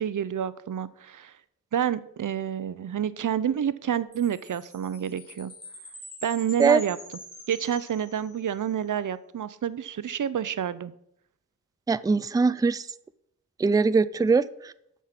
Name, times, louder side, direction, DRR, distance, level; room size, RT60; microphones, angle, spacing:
voice 1, 0.0-1.3 1.7-5.5 6.2-7.0 7.5-10.9, right 9 dB, 90° right, 16 dB, 0.6 m, -28 dB
Chime, 4.1-8.6, left 1 dB, 15° left, 3.9 m, -45 dB
voice 2, 11.9-12.8 13.6-14.7, right 4 dB, 15° right, 16 dB, 0.3 m, -22 dB
8.2 x 7.3 x 5.9 m, 0.77 s
wide cardioid pair, 90°, 30 cm